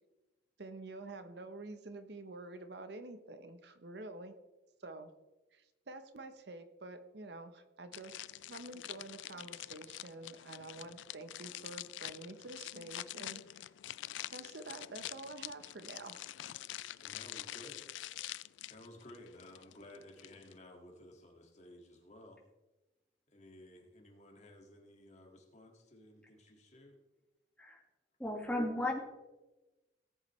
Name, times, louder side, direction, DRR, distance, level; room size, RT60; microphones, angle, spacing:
voice 1, 0.6-4.4 4.8-5.1 5.5-13.7 14.3-16.2, right 2 dB, 60° right, 9 dB, 0.8 m, -48 dB
sound 1, 7.9-20.6, left 14 dB, 75° left, 0.3 m, -46 dB
voice 2, 17.0-17.8 18.6-22.4 23.3-27.0, left 1 dB, 35° left, 1 dB, 1.9 m, -55 dB
voice 3, 28.2-29.0, left 1 dB, 5° left, -1 dB, 1.8 m, -34 dB
18.5 x 8.0 x 3.2 m, 1.1 s
head